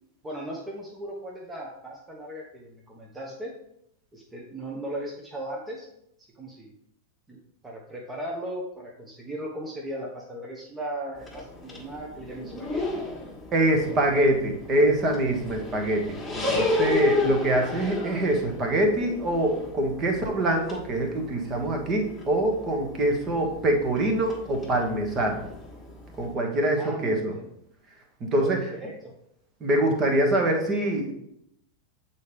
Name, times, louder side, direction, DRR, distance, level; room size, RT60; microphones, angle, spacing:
voice 1, 0.2-3.5 4.1-5.9 6.3-6.7 7.3-7.4 7.6-13.1 13.8-14.1 26.8-27.5 28.4-29.1, right 1 dB, 15° right, -2 dB, 0.9 m, -37 dB
sound 1, 11.2-26.3, left 2 dB, 5° left, 1.6 m, -33 dB
voice 2, 13.5-25.4 26.2-27.3 28.2-28.6 29.6-31.1, right 1 dB, 30° right, 2 dB, 1.3 m, -24 dB
8.0 x 4.3 x 3.4 m, 0.78 s
figure-of-eight pair, 90°, 0 cm